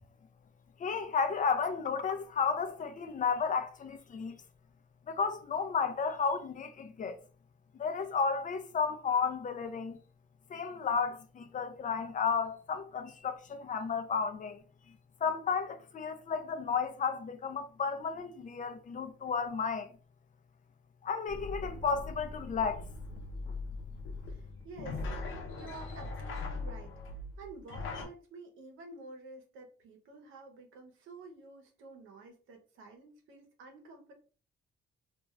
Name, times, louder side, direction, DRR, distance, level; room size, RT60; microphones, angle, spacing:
voice 1, 0.8-4.4 5.1-7.2 7.8-10.0 10.5-14.6 15.2-19.9 21.0-22.8, left 5 dB, 40° left, 0.4 m, -33 dB
sound 1, 21.3-28.0, left 3 dB, 80° left, 0.7 m, -40 dB
voice 2, 24.3-25.0 25.5-26.9 27.4-34.1, right 3 dB, 85° right, 0.8 m, -50 dB
2.4 x 2.3 x 3.1 m
cardioid pair, 90°, 20 cm